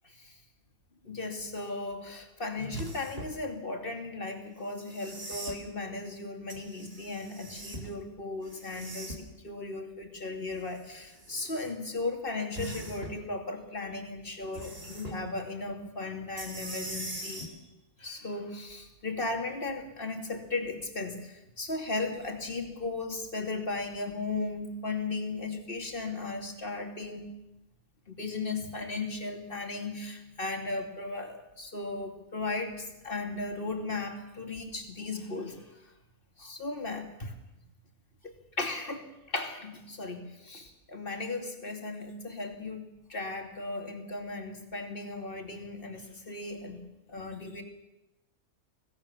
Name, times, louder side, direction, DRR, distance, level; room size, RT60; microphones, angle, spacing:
voice 1, 1.0-17.4 18.0-27.3 28.1-35.6 36.4-37.3 38.2-46.8 47.1-47.6, left 3 dB, 35° left, 4 dB, 3.0 m, -36 dB
sound 1, 2.7-3.4 4.7-5.6 6.5-7.9 8.4-9.4 10.5-11.7 12.5-13.2 14.5-15.2 16.4-17.5 19.2-19.3, right 1 dB, 40° right, 3.5 m, -41 dB
26.5 x 17.5 x 7.2 m, 0.94 s
omnidirectional pair, 1.6 m